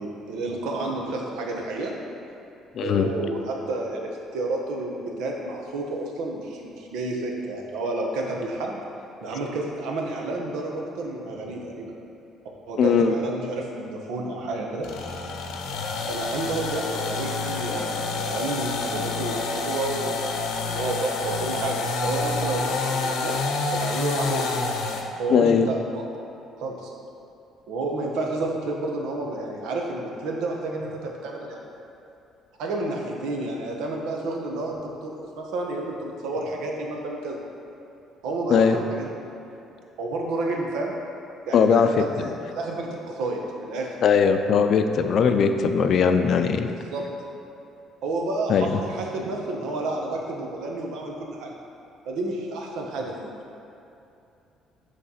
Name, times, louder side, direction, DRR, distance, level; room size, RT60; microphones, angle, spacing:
voice 1, 0.0-1.9 2.8-8.8 9.2-11.9 12.7-14.9 16.1-23.4 23.7-24.4 25.2-26.0 26.6-26.9 27.7-31.7 32.6-37.4 38.2-39.1 40.0-40.9 41.5-44.1 46.9-47.0 48.0-51.5 52.1-53.3, right 2 dB, 85° right, 0 dB, 1.0 m, -30 dB
voice 2, 2.7-3.1 12.8-13.2 25.3-25.7 38.5-38.8 41.5-41.9 42.2-42.3 44.0-46.7 48.5-48.8, left 6 dB, 50° left, 7 dB, 0.4 m, -19 dB
sound 1, 14.8-25.1, left 3 dB, 80° left, 0.7 m, -28 dB
8.4 x 3.3 x 5.6 m, 2.8 s
cardioid pair, 150°, 0 cm